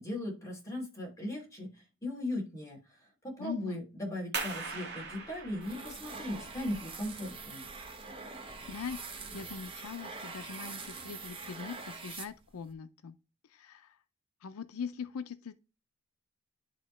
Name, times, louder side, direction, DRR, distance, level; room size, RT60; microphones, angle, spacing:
voice 1, 0.0-2.8 3.2-7.6, left 1 dB, 15° left, 2.8 m, -38 dB
voice 2, 3.4-3.8 8.4-13.1 13.5-14.0 14.4-15.5, left 6 dB, 85° left, 0.5 m, -42 dB
sound 1, 4.3-9.7, right 4 dB, 55° right, 1.5 m, -43 dB
sound 2, 5.6-12.7, right 4 dB, 25° right, 0.9 m, -44 dB
11.0 x 3.6 x 3.1 m
head